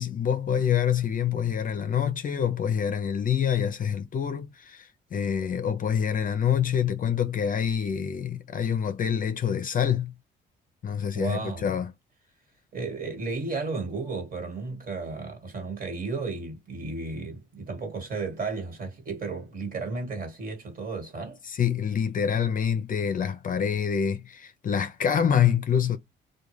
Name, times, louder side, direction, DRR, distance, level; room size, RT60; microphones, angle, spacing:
voice 1, 0.0-10.1 10.8-11.9 21.4-26.0, left 8 dB, 45° left, 0.5 m, -26 dB
voice 2, 11.1-11.7 12.7-21.4, right 3 dB, 45° right, 1.5 m, -33 dB
2.3 x 2.2 x 3.0 m
cardioid pair, 90°, 20 cm